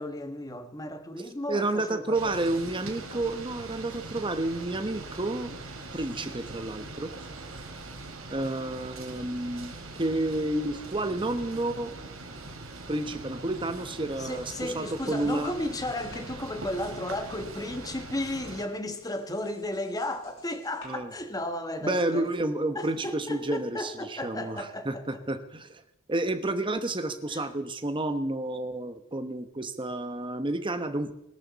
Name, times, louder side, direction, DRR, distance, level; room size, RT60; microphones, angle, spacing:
voice 1, 0.0-2.4 3.1-3.3 14.2-22.3 22.7-25.0 27.3-27.5, left 1 dB, 20° left, 1.4 m, -34 dB
voice 2, 1.5-5.5 5.9-7.1 8.3-9.7 10.0-11.9 12.9-15.5 20.8-21.1 21.8-25.8 26.1-31.1, right 2 dB, 25° right, 1.2 m, -30 dB
sound 1, 2.1-18.7, right 2 dB, 80° right, 2.8 m, -42 dB
sound 2, 14.2-17.7 17.9-21.7, left 2 dB, 85° left, 5.8 m, -56 dB
21.0 x 13.5 x 4.2 m
head